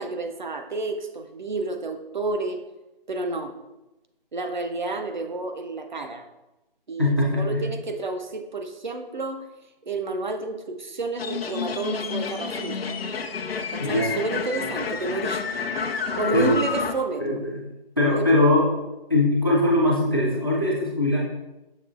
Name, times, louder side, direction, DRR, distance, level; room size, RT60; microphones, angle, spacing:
voice 1, 0.0-2.6 3.1-3.5 4.3-6.2 6.9-9.4 9.8-12.8 13.7-15.4 16.2-17.4 18.1-18.3, right 3 dB, 55° right, 6 dB, 0.4 m, -30 dB
voice 2, 7.0-7.6 13.8-14.2 16.3-16.6 17.2-17.6 18.0-18.8 19.1-21.2, left 1 dB, 25° left, -2 dB, 0.4 m, -21 dB
sound 1, 11.2-16.9, left 5 dB, 80° left, 0.5 m, -29 dB
6.4 x 2.9 x 2.4 m, 0.98 s
figure-of-eight pair, 170°, 29 cm